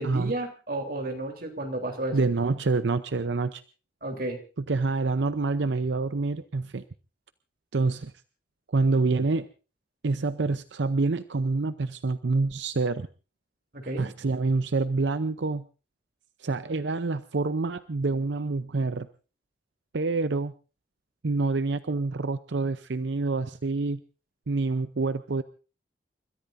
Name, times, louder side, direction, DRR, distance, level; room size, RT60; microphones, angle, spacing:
voice 1, 0.0-2.2 4.0-4.4 13.7-14.1, right 1 dB, 55° right, 4 dB, 3.5 m, -32 dB
voice 2, 2.1-3.6 4.7-6.8 7.7-8.1 8.7-9.5 10.0-13.1 14.0-15.6 16.4-19.1 19.9-20.5 21.2-24.0 24.5-25.4, right 3 dB, 85° right, 12 dB, 0.7 m, -27 dB
29.5 x 14.0 x 2.6 m, 0.34 s
head